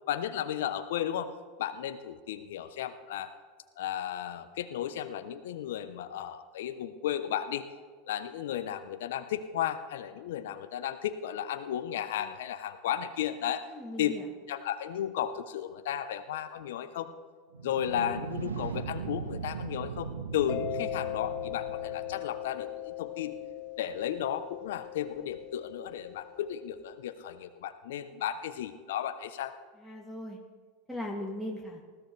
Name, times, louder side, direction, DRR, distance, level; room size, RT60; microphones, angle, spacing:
voice 1, 0.1-1.3 1.6-3.3 3.8-7.7 8.1-13.6 14.0-14.1 14.5-17.1 17.6-23.4 23.8-29.5, left 10 dB, 70° left, 9 dB, 0.8 m, -34 dB
voice 2, 13.7-14.3 29.8-30.4 30.9-31.8, left 1 dB, ahead, -5 dB, 2.5 m, -38 dB
Planetary Flyby, 17.5-22.4, right 6 dB, 85° right, 1.0 m, -39 dB
Mallet percussion, 20.5-26.9, left 12 dB, 55° left, 1.4 m, -39 dB
20.0 x 14.5 x 3.3 m, 1.5 s
hypercardioid pair, 90°, 0 cm